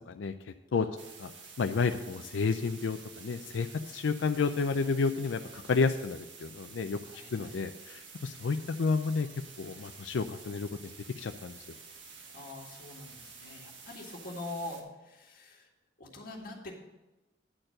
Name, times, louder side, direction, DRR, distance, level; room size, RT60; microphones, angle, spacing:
voice 1, 0.1-0.9 1.2-1.3 1.6-9.3 9.6-11.8, left 4 dB, 85° left, 7 dB, 0.4 m, -31 dB
sound 1, 1.0-14.8, right 5 dB, 90° right, 1.5 m, -50 dB
voice 2, 7.0-7.6 12.3-15.7 16.0-16.8, left 2 dB, 50° left, -1 dB, 1.9 m, -44 dB
10.0 x 4.5 x 7.7 m, 1.1 s
head